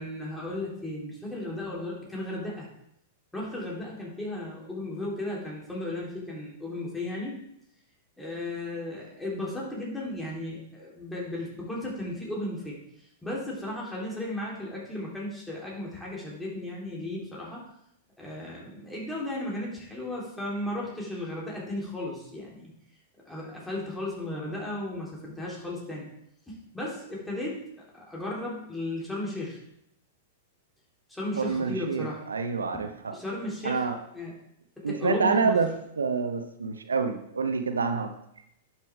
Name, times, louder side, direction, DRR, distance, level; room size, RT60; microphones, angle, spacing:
voice 1, 0.0-2.7 3.3-7.4 8.2-17.6 18.2-22.7 23.2-26.1 26.5-29.6 31.1-32.2 32.7-32.8 33.1-33.9 34.1-34.4 34.8-35.6, left 1 dB, 5° left, -5 dB, 3.5 m, -35 dB
voice 2, 31.4-33.1 33.6-34.0 34.8-35.7 36.0-38.1, right 5 dB, 85° right, 7 dB, 0.8 m, -27 dB
11.0 x 6.7 x 3.6 m, 0.76 s
hypercardioid pair, 105°, 0 cm